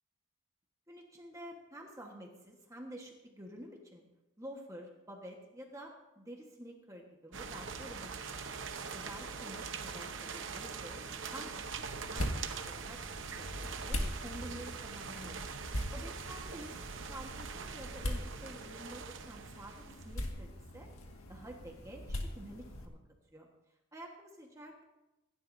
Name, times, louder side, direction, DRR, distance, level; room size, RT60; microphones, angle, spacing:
voice 1, 0.9-4.0 4.4-8.1 8.3-8.5 8.9-11.0 11.3-11.6 12.0-13.0 13.3-15.4 15.9-20.9 21.3-23.0 23.3-23.5 23.9-24.8, right 1 dB, 15° right, 0 dB, 1.4 m, -49 dB
sound 1, 7.3-20.3, right 5 dB, 60° right, 0.9 m, -43 dB
sound 2, 11.7-22.9, left 1 dB, 90° left, 1.9 m, -42 dB
26.5 x 11.5 x 2.7 m, 0.97 s
head